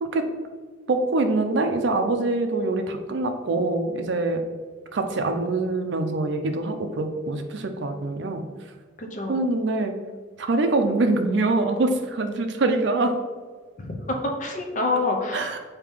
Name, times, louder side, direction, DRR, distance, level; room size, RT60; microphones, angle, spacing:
voice 1, 0.9-4.4 4.9-8.4 9.3-9.9 10.4-13.2 15.3-15.6, right 2 dB, 65° right, 6 dB, 0.4 m, -24 dB
voice 2, 9.0-9.4 13.8-15.6, left 2 dB, 40° left, 2 dB, 0.6 m, -27 dB
4.9 x 2.8 x 3.5 m, 1.5 s
head